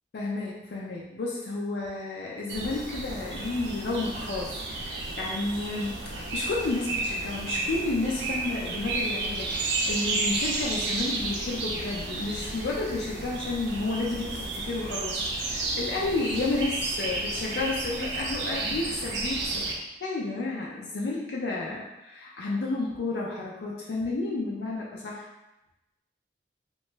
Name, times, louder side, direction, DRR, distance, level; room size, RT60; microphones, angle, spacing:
voice 1, 0.1-25.3, left 2 dB, 65° left, -4 dB, 0.4 m, -31 dB
sound 1, 2.5-19.8, right 2 dB, 75° right, 0.5 m, -32 dB
2.8 x 2.2 x 3.2 m, 0.98 s
head